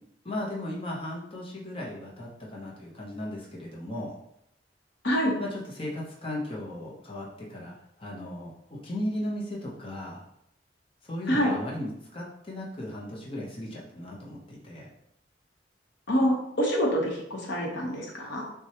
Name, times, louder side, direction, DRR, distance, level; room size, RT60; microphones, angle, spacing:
voice 1, 0.2-4.2 5.4-10.2 11.0-14.9, left 1 dB, 30° left, -4 dB, 0.8 m, -36 dB
voice 2, 5.0-5.3 11.3-11.5 16.1-18.4, equal, 80° left, -1 dB, 1.0 m, -26 dB
6.1 x 2.3 x 2.9 m, 0.78 s
head